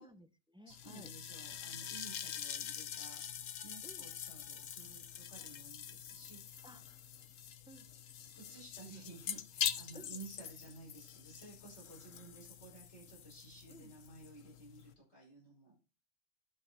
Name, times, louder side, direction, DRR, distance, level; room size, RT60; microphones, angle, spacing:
voice 1, 0.0-1.1 3.8-4.1 6.6-6.8 7.7-7.9 9.9-10.2 13.7-13.9, equal, 5° right, 10 dB, 0.5 m, -56 dB
voice 2, 0.6-6.6 8.3-15.7, right 3 dB, 60° left, -6 dB, 5.6 m, -54 dB
sound 1, 0.7-14.9, left 9 dB, 85° left, 1.2 m, -44 dB
12.0 x 6.2 x 4.2 m, 0.32 s
omnidirectional pair, 1.3 m